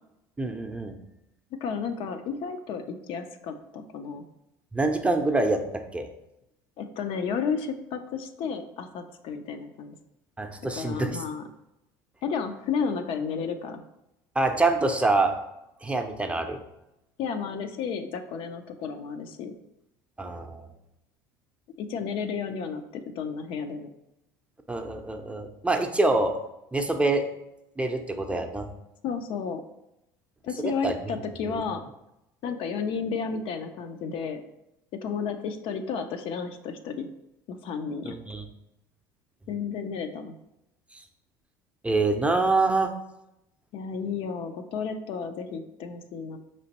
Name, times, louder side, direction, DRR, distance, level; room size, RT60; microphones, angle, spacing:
voice 1, 0.4-1.0 4.7-5.6 5.9-6.1 10.4-11.2 14.4-15.3 15.8-16.6 20.2-20.7 24.7-26.3 26.7-27.2 27.8-28.7 30.6-30.9 31.5-31.6 38.1-38.4 41.8-42.9, right 2 dB, 10° right, 5 dB, 0.5 m, -25 dB
voice 2, 1.6-4.2 6.8-9.9 10.7-11.4 12.2-13.8 17.2-19.5 21.8-23.9 29.0-29.6 30.4-31.8 32.4-34.4 35.0-37.1 37.5-38.2 39.5-40.3 43.7-46.4, left 6 dB, 55° left, 7 dB, 0.4 m, -32 dB
4.9 x 3.0 x 2.9 m, 0.87 s
hypercardioid pair, 75°, 11 cm